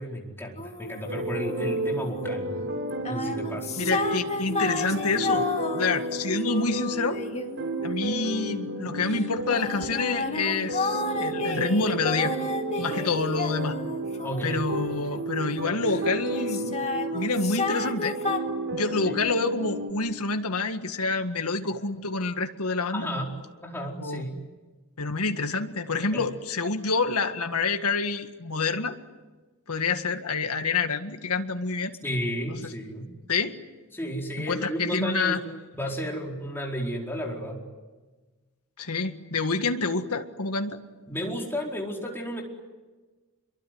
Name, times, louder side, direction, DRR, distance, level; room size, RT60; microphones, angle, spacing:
voice 1, 0.0-2.7 3.1-3.7 14.2-14.6 19.1-19.2 22.9-23.3 23.6-24.4 26.1-26.2 32.0-33.1 33.9-35.4 35.7-37.6 41.1-42.4, equal, 10° left, -1 dB, 4.7 m, -32 dB
sound 1, 0.6-2.2 2.9-8.5 9.1-16.0 16.3-18.4, left 3 dB, 30° left, 2.2 m, -33 dB
sound 2, 1.1-19.9, right 1 dB, 55° right, 3.5 m, -32 dB
voice 2, 3.8-5.5 5.7-7.2 7.8-12.3 12.8-13.8 14.4-16.9 17.1-18.2 18.7-23.1 24.0-24.2 25.0-29.0 29.7-31.9 32.5-32.6 33.3-33.6 34.4-35.4 38.8-40.8, left 3 dB, 85° left, 7 dB, 1.8 m, -27 dB
27.0 x 23.0 x 9.5 m, 1.3 s
head